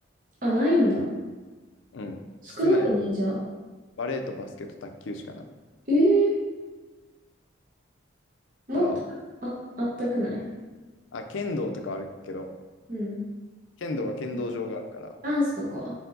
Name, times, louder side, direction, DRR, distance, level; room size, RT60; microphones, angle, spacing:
voice 1, 0.4-1.1 2.4-3.4 5.9-6.4 8.7-8.9 9.4-10.4 12.9-13.2 15.2-15.9, equal, 40° right, -6 dB, 0.9 m, -24 dB
voice 2, 1.9-2.9 4.0-5.5 8.7-9.0 11.1-12.5 13.8-15.2, left 2 dB, 75° left, 5 dB, 0.4 m, -33 dB
4.4 x 4.2 x 2.6 m, 1.3 s
head